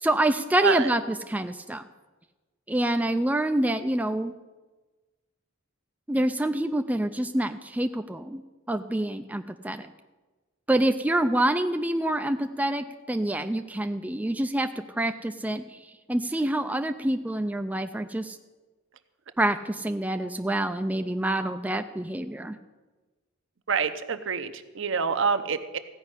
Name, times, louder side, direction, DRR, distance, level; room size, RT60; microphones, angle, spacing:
voice 1, 0.0-1.8 2.7-4.3 6.1-8.4 8.7-9.9 10.7-15.8 16.1-18.4 19.4-22.6, right 1 dB, 5° right, 6 dB, 0.4 m, -27 dB
voice 2, 23.7-25.8, right 6 dB, 60° right, 9 dB, 0.8 m, -26 dB
15.5 x 5.5 x 9.7 m, 1.2 s
head